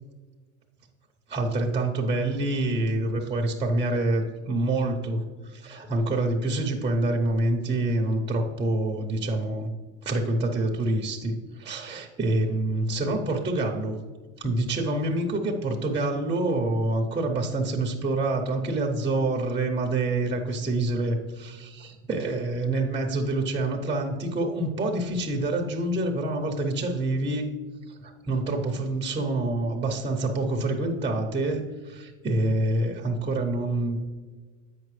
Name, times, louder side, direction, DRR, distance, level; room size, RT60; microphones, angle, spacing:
voice 1, 1.3-9.7 10.0-14.0 14.4-27.5 27.9-34.0, right 2 dB, 15° right, 2 dB, 0.7 m, -27 dB
8.0 x 5.9 x 3.2 m, 1.4 s
supercardioid pair, 120°, 40 cm